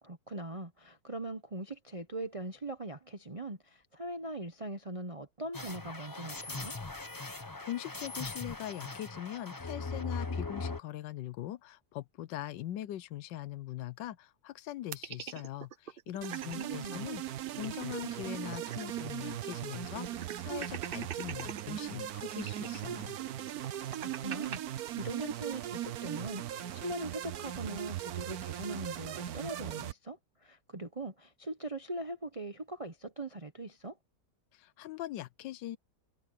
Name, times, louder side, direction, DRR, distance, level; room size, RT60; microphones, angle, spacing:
voice 1, 0.0-6.7 16.3-17.0 24.0-34.0, right 2 dB, 25° right, 0.8 m, -41 dB
sound 1, 5.5-10.8, left 3 dB, 15° left, 0.8 m, -39 dB
voice 2, 7.3-23.2 34.5-35.8, left 13 dB, 90° left, 1.4 m, -42 dB
sound 2, 14.9-16.6 17.0-17.1 17.4-19.2 19.4-19.5 20.0-21.6 22.3-24.6, right 8 dB, 85° right, 0.4 m, -43 dB
sound 3, 16.2-29.9, right 12 dB, 65° right, 1.2 m, -39 dB
omnidirectional pair, 1.9 m